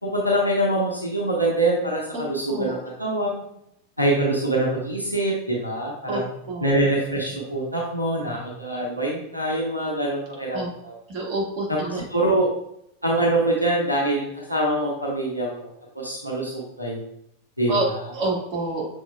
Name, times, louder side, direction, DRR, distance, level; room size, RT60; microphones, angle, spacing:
voice 1, 0.0-3.3 4.0-6.3 6.6-10.9 11.7-12.5 13.0-17.0 17.6-18.1, right 1 dB, 90° right, -3 dB, 0.9 m, -24 dB
voice 2, 2.1-2.8 6.1-6.2 6.5-6.7 10.5-10.7 11.1-12.0 17.7-17.9 18.1-18.9, right 2 dB, 40° right, -4 dB, 1.6 m, -27 dB
6.3 x 3.6 x 2.3 m, 0.76 s
figure-of-eight pair, 90°, 0 cm